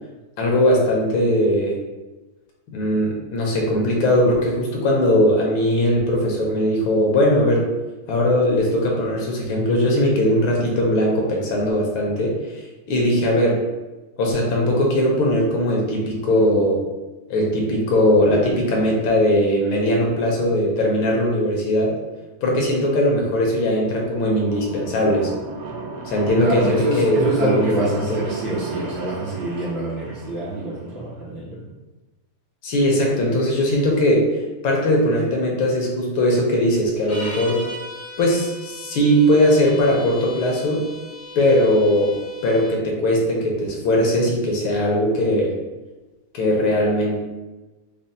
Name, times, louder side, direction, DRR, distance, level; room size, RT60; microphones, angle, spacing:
voice 1, 0.4-1.8 2.7-7.7 8.1-12.6 12.9-13.6 14.2-16.8 17.3-22.0 22.4-25.3 26.0-28.2 32.6-37.6 38.2-40.9 41.4-45.5 46.3-47.2, left 1 dB, 75° left, -2 dB, 1.4 m, -19 dB
sound 1, 23.3-31.1, right 3 dB, 90° right, 1.6 m, -35 dB
voice 2, 26.4-31.7, right 1 dB, 65° right, -6 dB, 1.1 m, -26 dB
sound 2, 37.0-42.8, equal, 50° left, 0.6 m, -38 dB
5.1 x 2.1 x 2.6 m, 1.1 s
omnidirectional pair, 2.4 m